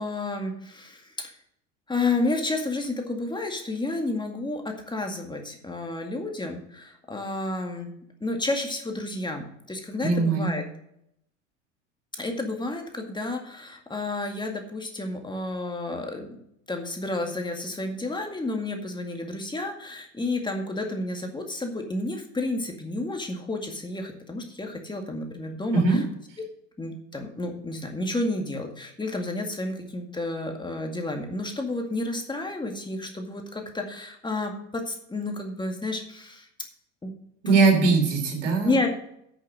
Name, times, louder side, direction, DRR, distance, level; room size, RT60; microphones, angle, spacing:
voice 1, 0.0-1.3 1.9-7.9 8.2-10.6 12.2-16.4 16.7-26.0 26.8-36.5 37.0-37.1 37.5-37.6 38.6-38.9, left 2 dB, 10° left, 3 dB, 2.1 m, -31 dB
voice 2, 10.0-10.5 25.7-26.0 37.4-38.7, right 4 dB, 75° right, 4 dB, 3.2 m, -20 dB
10.5 x 6.7 x 6.3 m, 0.74 s
hypercardioid pair, 75°, 37 cm